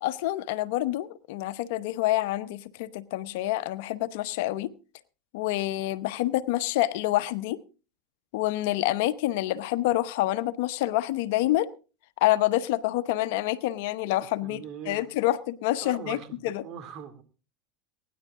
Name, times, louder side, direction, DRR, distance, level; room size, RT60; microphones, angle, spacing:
voice 1, 0.0-4.7 5.3-7.6 8.3-11.7 12.2-16.2 16.4-16.6, left 15 dB, 65° left, 0.9 m, -27 dB
voice 2, 14.4-15.1 15.8-17.2, right 8 dB, 50° right, 2.5 m, -41 dB
22.5 x 10.5 x 3.7 m
hypercardioid pair, 95°, 0 cm